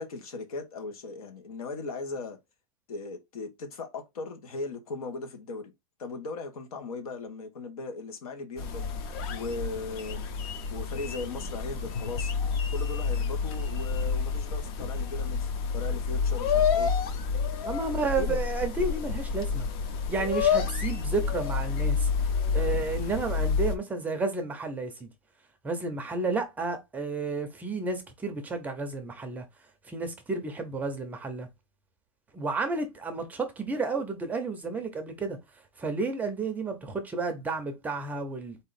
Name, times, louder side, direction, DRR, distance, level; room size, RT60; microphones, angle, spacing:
voice 1, 0.0-2.4 2.9-5.7 6.0-8.8 9.3-10.2 10.7-12.3 12.7-16.9 17.6-18.4, left 3 dB, 85° left, 1.7 m, -38 dB
sound 1, 8.6-23.8, left 5 dB, 40° left, 0.7 m, -29 dB
voice 2, 17.6-19.7 20.1-22.1 22.5-25.1 25.6-29.5 29.8-31.5 32.3-35.4 35.8-38.6, right 3 dB, 10° right, 0.5 m, -31 dB
4.2 x 2.9 x 4.1 m
supercardioid pair, 165°, 18 cm